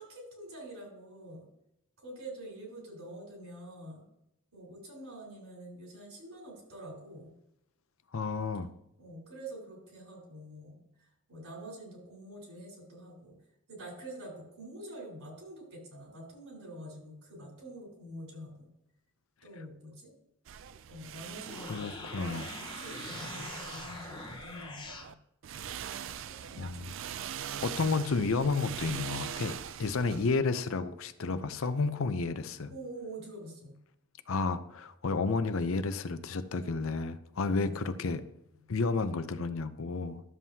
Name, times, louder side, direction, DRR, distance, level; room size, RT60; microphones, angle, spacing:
voice 1, 0.0-1.5 2.0-4.0 4.5-7.3 9.0-13.4 13.7-18.7 19.4-20.1 20.9-25.2 26.0-26.8 32.7-33.8 37.4-38.0 38.5-38.8, right 1 dB, 80° right, 4.0 m, -47 dB
voice 2, 8.1-8.7 21.7-22.5 26.6-26.9 27.6-32.7 34.3-38.3 38.7-40.2, left 4 dB, 70° left, 0.6 m, -31 dB
sound 1, 20.5-25.1 25.4-30.4, right 9 dB, 60° right, 0.4 m, -42 dB
sound 2, 21.3-25.1, left 3 dB, 20° left, 0.9 m, -44 dB
12.5 x 7.4 x 2.8 m
head